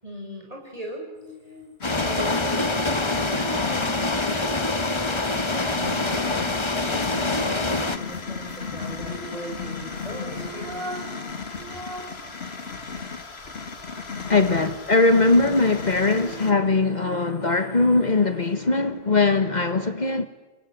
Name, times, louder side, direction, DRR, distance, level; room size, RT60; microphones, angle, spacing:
voice 1, 0.0-1.1 1.5-1.6 2.0-5.3 5.8-10.9, equal, 35° right, 7.1 m, -39 dB
sound 1, 1.2-5.4 9.0-12.3 12.7-12.8 15.6-18.5 18.9-19.0, right 1 dB, 65° right, 3.5 m, -42 dB
sound 2, 1.8-16.5, left 5 dB, 85° left, 2.1 m, -36 dB
sound 3, 1.8-8.0, left 2 dB, 30° left, 1.2 m, -25 dB
voice 2, 14.3-20.3, left 3 dB, 45° left, 1.4 m, -20 dB
29.0 x 22.0 x 9.3 m
omnidirectional pair, 1.0 m